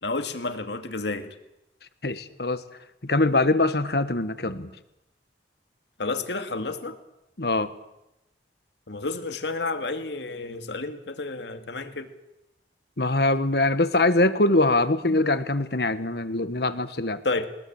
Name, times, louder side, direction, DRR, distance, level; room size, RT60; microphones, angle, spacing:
voice 1, 0.0-1.3 6.0-7.0 8.9-12.1 17.2-17.5, left 3 dB, 80° left, 8 dB, 2.3 m, -30 dB
voice 2, 2.0-2.6 3.0-4.7 7.4-7.7 13.0-17.2, left 2 dB, 65° left, 12 dB, 1.5 m, -23 dB
22.0 x 20.0 x 8.9 m, 0.91 s
head